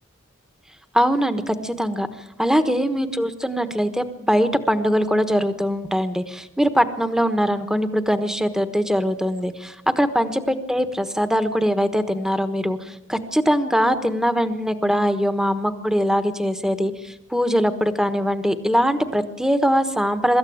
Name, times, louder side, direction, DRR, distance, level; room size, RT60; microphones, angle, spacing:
voice 1, 0.9-2.1 2.4-20.4, equal, 5° right, 9 dB, 1.2 m, -22 dB
24.0 x 13.5 x 8.7 m, 0.91 s
head